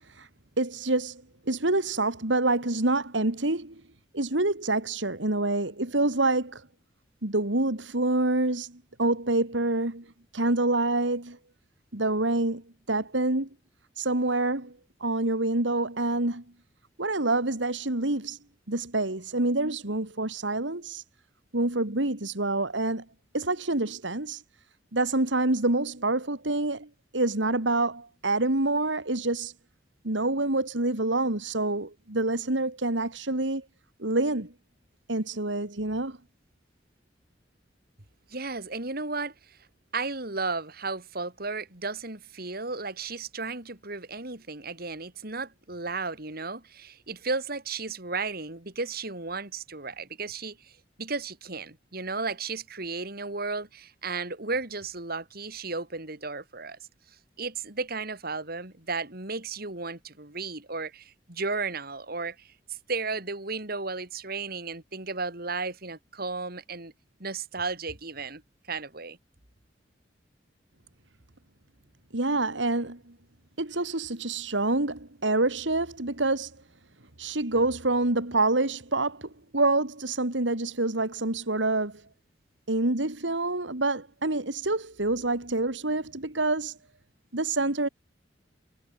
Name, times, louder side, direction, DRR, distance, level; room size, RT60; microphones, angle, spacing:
voice 1, 0.6-3.8 4.1-6.6 7.2-10.1 10.3-11.4 11.9-12.6 12.9-13.5 14.0-14.7 15.0-16.4 17.0-18.4 18.7-21.0 21.5-23.0 23.3-24.4 24.9-29.5 30.0-33.6 34.0-34.5 35.1-36.2 72.1-73.0 73.6-76.5 77.2-82.0 82.7-86.8 87.3-87.9, right 2 dB, 85° right, 3.0 m, -27 dB
voice 2, 38.3-39.6 39.9-50.7 51.0-56.8 57.4-66.9 67.2-68.4 68.7-69.2, right 4 dB, 55° right, 4.2 m, -34 dB
head